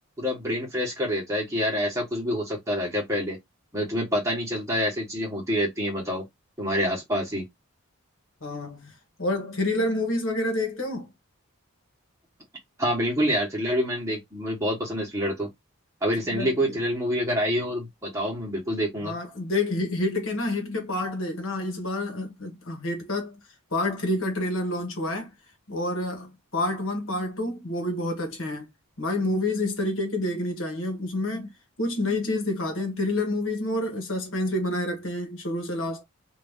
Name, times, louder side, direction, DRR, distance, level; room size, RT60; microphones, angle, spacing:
voice 1, 0.2-3.4 3.7-6.2 6.6-7.4 12.8-15.5 16.0-19.1, equal, 15° right, 1.3 m, -27 dB
voice 2, 8.4-11.1 16.3-16.8 19.0-23.4 23.7-25.3 25.7-28.7 29.0-31.5 31.8-36.0, left 1 dB, 60° left, 1.3 m, -28 dB
2.8 x 2.7 x 3.5 m
head